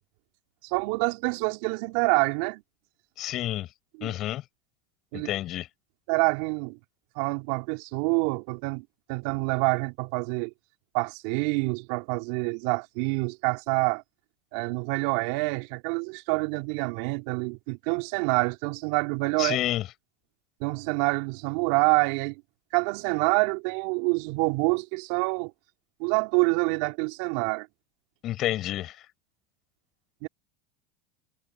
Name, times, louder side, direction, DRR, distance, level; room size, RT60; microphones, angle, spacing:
voice 1, 0.6-2.6 4.0-4.1 5.1-5.3 6.1-6.8 7.2-10.5 10.9-14.0 14.5-19.6 20.6-22.4 22.7-25.5 26.0-27.7 30.2-30.3, right 28 dB, 65° right, 3.5 m, -27 dB
voice 2, 3.2-3.7 4.0-4.4 5.1-5.7 19.4-19.8 28.2-29.0, left 14 dB, 45° left, 7.8 m, -29 dB
supercardioid pair, 115°, 0 cm